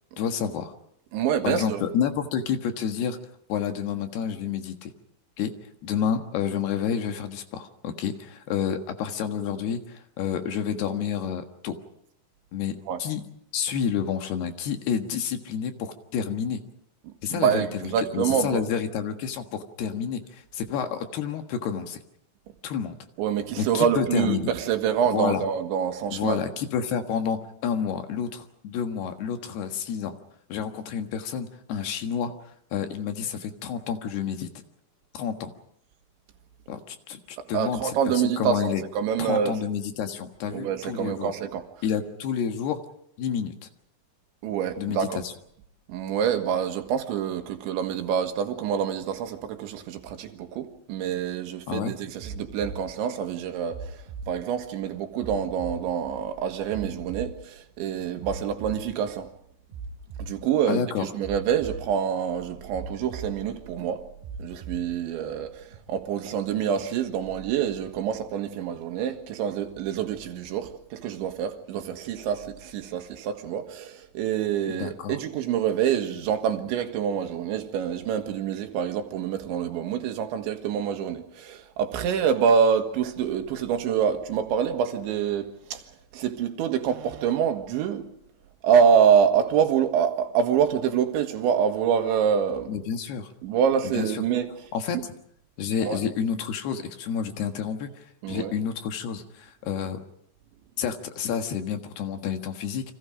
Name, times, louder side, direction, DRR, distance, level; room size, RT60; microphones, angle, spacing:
voice 1, 0.2-0.7 1.4-3.2 3.5-4.9 5.4-5.5 5.8-11.8 12.5-13.2 13.5-16.6 17.2-22.0 22.6-23.0 23.6-24.5 25.1-25.4 26.1-30.2 30.5-32.3 32.7-34.5 35.1-35.5 36.7-38.8 39.2-41.3 41.8-42.8 43.2-43.6 44.8-45.3 51.7-51.9 60.7-61.1 74.7-75.2 92.7-93.3 93.8-94.2 94.7-95.1 95.6-100.0 100.8-102.9, left 7 dB, 70° left, 3.4 m, -29 dB
voice 2, 1.1-1.8 12.9-13.0 17.1-18.6 23.2-26.4 37.4-39.6 40.5-41.6 44.4-45.2 45.9-59.3 60.2-64.0 64.4-85.8 86.1-88.1 88.6-92.7 93.4-94.5 94.9-95.0 95.8-96.0 98.2-98.5, right 8 dB, 85° right, 4.0 m, -26 dB
sound 1, 52.2-52.8 53.7-54.3 55.2-55.8 56.7-57.3 58.2-58.8 59.7-60.3 61.2-61.8 62.7-63.3 64.2-64.8 65.7-65.8, right 4 dB, 65° right, 6.6 m, -37 dB
29.5 x 25.0 x 5.1 m
omnidirectional pair, 5.1 m